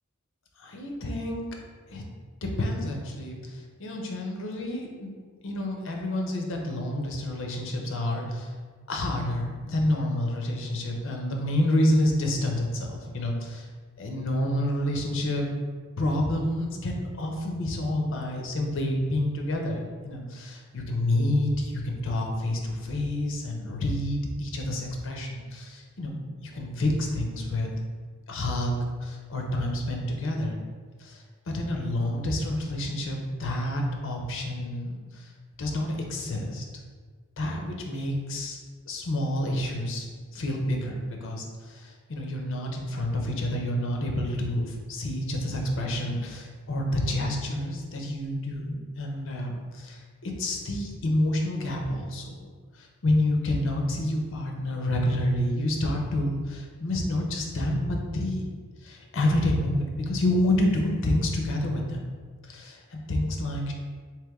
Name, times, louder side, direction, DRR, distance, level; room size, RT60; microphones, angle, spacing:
voice 1, 0.6-1.4 1.9-2.0 2.4-5.1 5.4-8.5 8.9-13.7 14.0-15.5 16.0-27.7 28.3-30.6 31.0-35.3 35.6-36.6 37.4-38.6 38.9-52.2 52.8-58.5 58.8-62.0 62.5-63.7, left 1 dB, 65° left, 1 dB, 0.6 m, -28 dB
3.3 x 2.9 x 3.5 m, 1.5 s
head